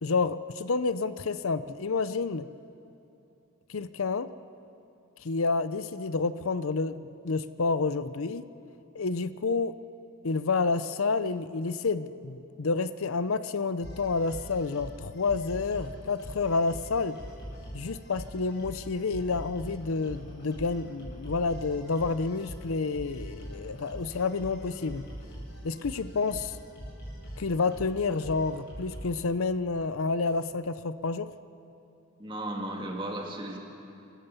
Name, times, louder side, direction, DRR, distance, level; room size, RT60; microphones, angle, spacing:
voice 1, 0.0-2.5 3.7-4.3 5.2-8.4 8.9-9.7 10.2-17.2 17.7-25.0 25.6-26.6 27.4-31.3, left 4 dB, 75° left, 13 dB, 0.6 m, -29 dB
sound 1, 13.8-29.1, equal, 50° left, 7.1 m, -43 dB
voice 2, 32.2-33.6, right 1 dB, 20° right, 1 dB, 2.4 m, -35 dB
29.5 x 15.0 x 6.9 m, 2.8 s
head